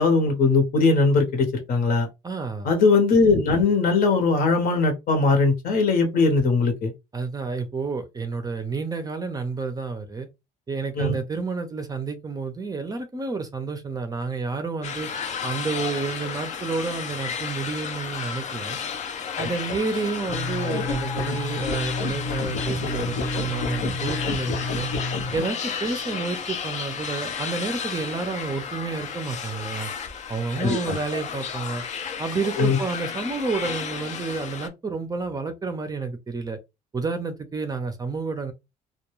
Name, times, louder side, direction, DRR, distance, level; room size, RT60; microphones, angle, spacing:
voice 1, 0.0-2.1 2.6-6.9 11.0-11.2 19.4-19.5 30.6-31.0 32.6-32.8, left 3 dB, 60° left, 1.0 m, -20 dB
voice 2, 2.2-2.7 7.1-10.3 10.7-15.1 15.4-18.8 19.4-24.9 25.3-29.9 30.3-31.8 32.2-36.6 36.9-38.5, right 4 dB, 20° right, 0.5 m, -30 dB
sound 1, 14.8-34.7, left 7 dB, 45° left, 0.5 m, -33 dB
sound 2, 20.3-25.6, left 3 dB, 85° left, 0.7 m, -29 dB
2.2 x 2.2 x 3.0 m
cardioid pair, 110°, 17 cm